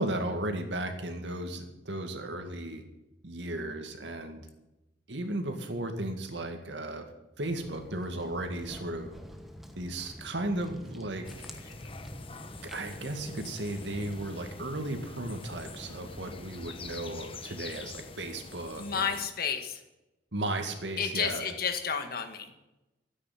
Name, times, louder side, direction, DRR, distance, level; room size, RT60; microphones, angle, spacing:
voice 1, 0.0-2.8 3.2-4.5 5.1-7.1 7.4-9.2 9.8-11.3 12.7-19.1 20.3-21.4, right 1 dB, 80° right, 5 dB, 2.2 m, -35 dB
Walk footsteps, 7.4-17.3, equal, ahead, 1.3 m, -48 dB
sound 1, 11.2-19.2, left 3 dB, 30° left, 0.9 m, -46 dB
voice 2, 18.8-19.8 21.0-22.5, left 6 dB, 55° left, 6 dB, 1.8 m, -31 dB
13.0 x 9.6 x 7.5 m, 0.96 s
head